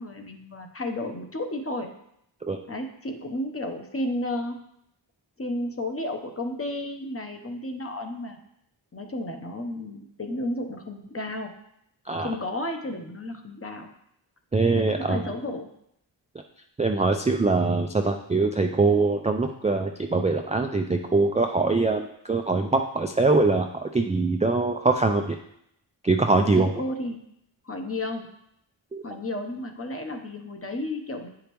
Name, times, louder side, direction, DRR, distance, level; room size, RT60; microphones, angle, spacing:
voice 1, 0.0-1.9 2.7-4.6 5.4-8.4 8.9-11.5 12.2-13.9 14.8-15.7 26.5-27.2 27.6-28.3 29.0-31.3, left 1 dB, 30° left, 4 dB, 0.8 m, -32 dB
voice 2, 14.5-15.2 16.8-25.4 26.0-26.7 28.9-29.0, right 3 dB, 15° right, 4 dB, 0.3 m, -23 dB
9.2 x 5.0 x 3.0 m, 0.75 s
wide cardioid pair, 95°, 49 cm